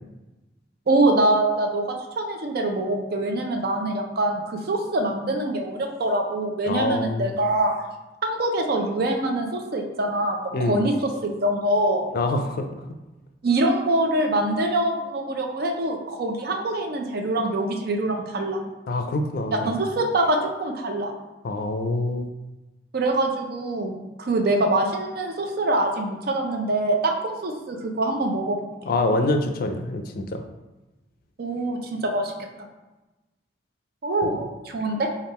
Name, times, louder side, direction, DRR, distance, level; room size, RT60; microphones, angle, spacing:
voice 1, 0.9-7.7 8.2-12.1 13.4-18.6 19.6-21.1 22.9-28.6 31.4-32.3 34.0-35.1, right 2 dB, 60° right, 3 dB, 0.5 m, -24 dB
voice 2, 6.7-7.4 10.5-10.8 12.1-12.6 18.9-19.7 21.4-22.3 28.8-30.4 34.2-34.4, left 2 dB, 55° left, 6 dB, 0.4 m, -25 dB
3.5 x 2.4 x 4.1 m, 1.1 s
head